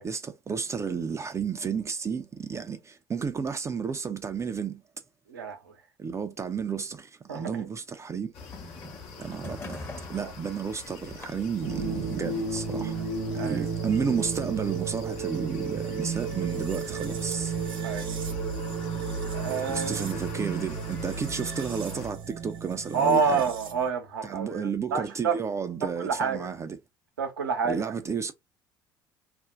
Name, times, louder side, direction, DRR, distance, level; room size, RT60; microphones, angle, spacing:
voice 1, 0.0-4.8 6.0-8.3 9.2-9.8 10.1-12.9 13.3-17.5 19.7-23.4 24.2-26.8 27.6-28.3, right 6 dB, 25° right, 0.5 m, -32 dB
voice 2, 5.3-5.6 7.3-7.7 10.2-10.3 13.4-13.6 17.8-18.1 19.3-20.1 22.9-25.4 25.8-26.5 27.2-27.9, right 5 dB, 85° right, 0.7 m, -28 dB
sound 1, 8.3-22.1, left 6 dB, 55° left, 0.9 m, -45 dB
sound 2, 8.3-14.1, left 1 dB, 20° left, 0.9 m, -45 dB
sound 3, 11.6-23.9, right 5 dB, 55° right, 0.9 m, -33 dB
2.5 x 2.1 x 3.6 m
hypercardioid pair, 65°, 11 cm